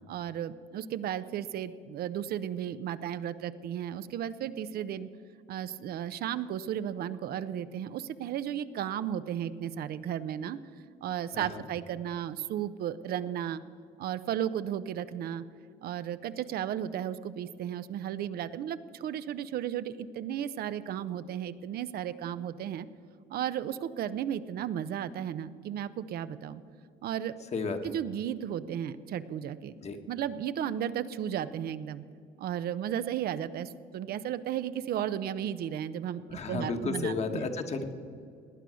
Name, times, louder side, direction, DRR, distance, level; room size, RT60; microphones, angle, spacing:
voice 1, 0.1-5.1 5.5-10.6 11.0-13.6 14.0-15.4 15.8-22.9 23.3-26.6 27.0-27.3 27.8-29.7 30.1-32.0 32.4-36.2 36.5-37.5, right 10 dB, 65° right, 13 dB, 0.6 m, -34 dB
voice 2, 27.5-27.9 29.8-30.0 36.3-37.9, left 4 dB, 40° left, 6 dB, 1.4 m, -33 dB
18.5 x 9.3 x 6.3 m, 2.3 s
cardioid pair, 115°, 17 cm